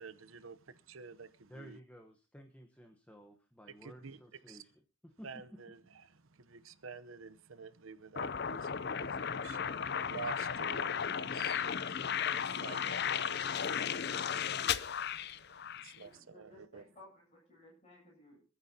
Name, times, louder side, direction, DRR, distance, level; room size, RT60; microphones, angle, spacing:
voice 1, 0.0-1.8 3.7-4.2 4.5-4.6 5.2-16.8, right 5 dB, 75° right, 0.8 m, -50 dB
voice 2, 1.5-4.7 5.0-5.6, equal, 5° left, 1.1 m, -54 dB
sound 1, 8.2-16.0, left 7 dB, 50° left, 0.6 m, -35 dB
voice 3, 15.9-18.4, left 1 dB, 30° left, 7.9 m, -59 dB
26.0 x 9.7 x 2.8 m
head